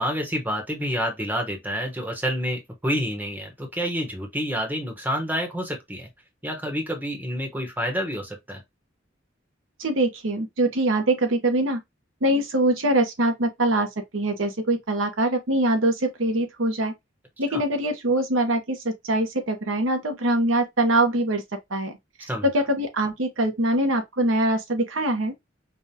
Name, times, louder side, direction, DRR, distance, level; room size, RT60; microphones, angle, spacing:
voice 1, 0.0-6.1 6.4-8.6 17.5-17.6 22.3-22.5, equal, 10° right, 1.0 m, -28 dB
voice 2, 9.8-11.8 12.2-13.9 14.1-16.9 17.4-21.4 21.7-21.9 22.5-25.3, right 1 dB, 80° right, 1.0 m, -23 dB
5.2 x 2.4 x 2.8 m
head